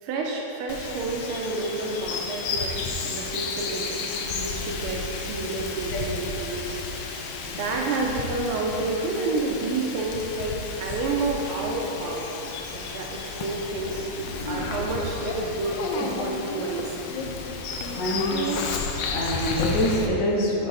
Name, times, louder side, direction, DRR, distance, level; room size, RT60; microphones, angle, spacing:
voice 1, 0.0-6.8 7.4-14.1 14.5-17.0 18.3-18.7, right 3 dB, 85° right, -1 dB, 1.5 m, -30 dB
Bird vocalization bird call bird song, 0.7-20.1, left 4 dB, 70° left, 1.1 m, -32 dB
voice 2, 18.0-18.3 19.1-20.7, left 1 dB, 50° left, -2 dB, 1.1 m, -25 dB
10.0 x 3.4 x 4.0 m, 3.0 s
omnidirectional pair, 2.4 m